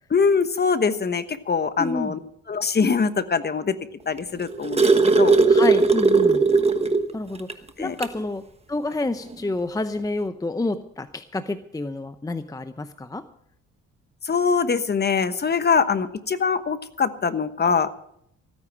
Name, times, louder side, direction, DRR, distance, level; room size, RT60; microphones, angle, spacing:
voice 1, 0.1-2.2 2.5-3.8 4.1-5.4 7.8-8.0 14.2-18.0, left 5 dB, 35° left, 12 dB, 1.2 m, -23 dB
voice 2, 1.8-2.2 5.5-6.5 7.1-7.5 7.8-8.4 8.7-13.2, left 2 dB, 10° left, 10 dB, 0.7 m, -29 dB
sound 1, 4.2-7.1 7.5-7.6 8.0-8.2 9.3-9.4, right 4 dB, 20° right, 1.3 m, -18 dB
16.5 x 9.8 x 6.1 m, 0.72 s
cardioid pair, 90°, 30 cm